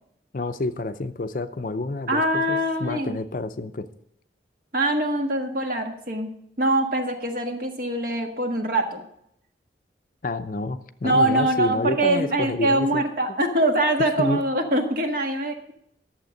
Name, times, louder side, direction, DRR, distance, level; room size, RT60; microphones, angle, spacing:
voice 1, 0.3-3.9 10.2-13.0 14.2-14.4, left 2 dB, 45° left, 11 dB, 0.5 m, -29 dB
voice 2, 2.1-3.2 4.7-6.3 6.6-9.0 11.0-15.7, right 1 dB, 50° right, 4 dB, 1.6 m, -23 dB
12.0 x 7.3 x 6.5 m, 0.74 s
head